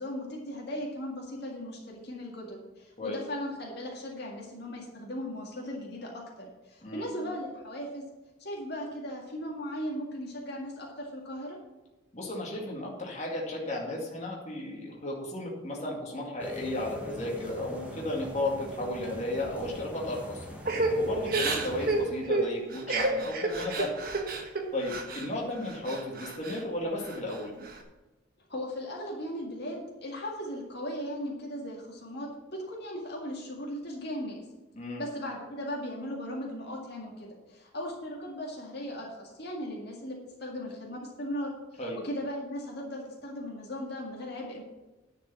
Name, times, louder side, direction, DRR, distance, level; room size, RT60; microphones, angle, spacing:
voice 1, 0.0-8.0 8.4-11.6 28.5-34.4 35.0-44.6, equal, 55° left, -2 dB, 2.0 m, -37 dB
voice 2, 12.1-20.4 21.0-23.9 24.7-27.5 34.8-35.0 41.8-42.0, left 1 dB, 35° left, -2 dB, 2.1 m, -34 dB
sound 1, 16.4-22.3, left 1 dB, 5° right, 1.5 m, -42 dB
Crying sobbing / Breathing, 20.6-25.3 25.6-26.6 27.0-27.8, right 2 dB, 50° right, 1.3 m, -30 dB
10.5 x 5.2 x 7.0 m, 1.1 s
head